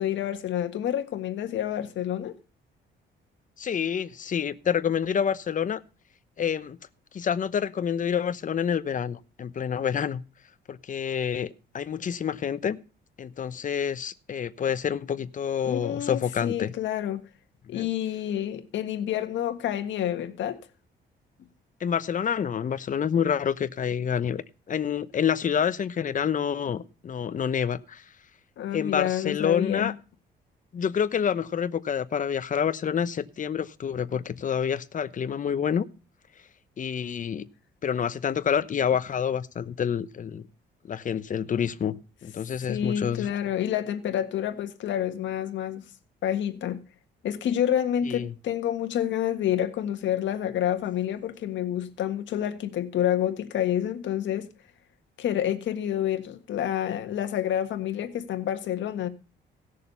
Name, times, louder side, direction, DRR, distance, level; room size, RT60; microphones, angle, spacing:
voice 1, 0.0-2.3 15.6-17.2 17.7-20.6 28.6-29.9 42.7-45.8 46.2-46.8 47.2-54.5 55.2-59.1, left 10 dB, 75° left, 1.7 m, -28 dB
voice 2, 3.6-5.8 6.4-6.8 7.1-10.2 10.7-12.8 13.2-16.7 17.7-17.9 21.8-28.0 28.7-29.9 30.7-35.9 36.8-37.5 37.8-40.5 40.9-42.0 42.2-43.3 48.0-48.3, left 8 dB, 40° left, 0.9 m, -28 dB
17.5 x 6.7 x 5.4 m
cardioid pair, 105°, 19 cm